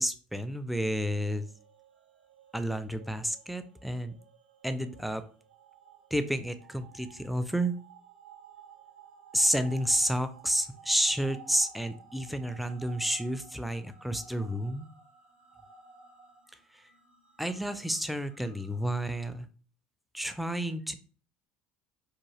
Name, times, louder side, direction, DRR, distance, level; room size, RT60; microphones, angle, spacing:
voice 1, 0.0-1.5 2.5-4.1 4.6-5.2 6.1-7.7 9.3-14.9 17.4-19.5 20.1-21.0, equal, ahead, 10 dB, 0.3 m, -30 dB
sound 1, 1.0-19.4, right 6 dB, 85° right, 0.6 m, -55 dB
2.9 x 2.2 x 3.0 m, 0.42 s
figure-of-eight pair, 65°, 5 cm